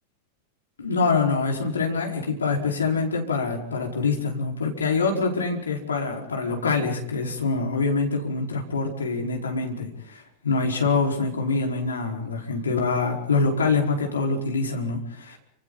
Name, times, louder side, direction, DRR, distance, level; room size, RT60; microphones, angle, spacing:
voice 1, 0.8-15.4, left 4 dB, 70° left, 1 dB, 4.7 m, -25 dB
30.0 x 27.0 x 4.1 m, 0.75 s
figure-of-eight pair, 90°, 0 cm